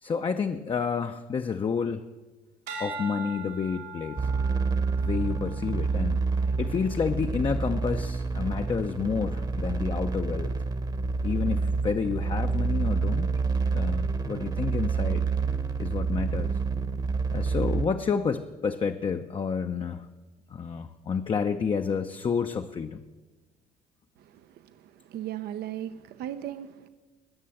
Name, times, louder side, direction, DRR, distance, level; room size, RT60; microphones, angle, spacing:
voice 1, 0.0-2.1 2.8-4.3 5.0-10.5 11.2-13.3 13.7-15.3 15.8-16.6 17.3-20.1 20.5-23.0, left 6 dB, 30° left, 6 dB, 0.6 m, -30 dB
sound 1, 2.7-7.1 7.7-8.1, right 3 dB, 85° right, 2.5 m, -42 dB
sound 2, 4.2-17.9, right 4 dB, 25° right, 1.0 m, -28 dB
voice 2, 25.1-26.9, right 11 dB, 70° right, 10 dB, 0.7 m, -36 dB
20.0 x 6.8 x 7.7 m, 1.2 s
cardioid pair, 110°, 17 cm